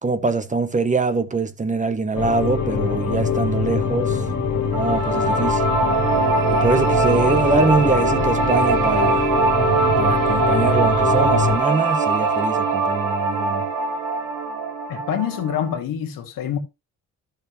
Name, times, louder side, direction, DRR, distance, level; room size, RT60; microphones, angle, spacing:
voice 1, 0.0-4.2 4.7-5.6 6.5-9.3 10.0-13.6, right 3 dB, 25° right, 1.2 m, -23 dB
sound 1, 2.1-11.6, left 5 dB, 65° left, 2.2 m, -23 dB
sound 2, 4.7-15.8, right 4 dB, 85° right, 1.7 m, -22 dB
voice 2, 14.9-16.6, left 9 dB, 90° left, 2.2 m, -26 dB
12.5 x 6.6 x 3.2 m
cardioid pair, 100°, 33 cm